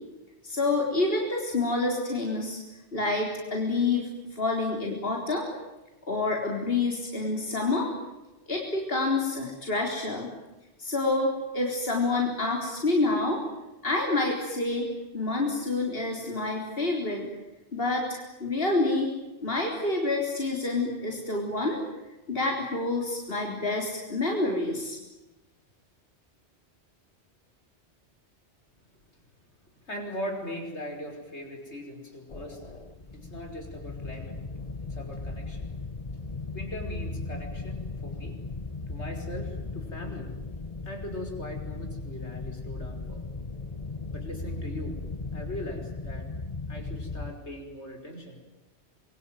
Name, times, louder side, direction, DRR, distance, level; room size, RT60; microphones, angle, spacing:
voice 1, 0.4-2.6 2.9-5.5 6.1-7.9 8.5-10.3 10.8-13.4 13.8-17.3 17.7-19.1 19.4-21.8 22.3-25.0, left 2 dB, 55° left, 0 dB, 4.2 m, -28 dB
voice 2, 29.9-34.4 34.8-35.7 36.5-38.4 38.9-40.3 40.8-43.2 44.1-45.0 45.3-46.3 46.7-48.4, left 1 dB, 75° left, 3 dB, 6.0 m, -40 dB
sound 1, 32.3-47.3, left 3 dB, 35° left, 1.4 m, -37 dB
26.5 x 23.5 x 9.3 m, 1.0 s
omnidirectional pair, 1.2 m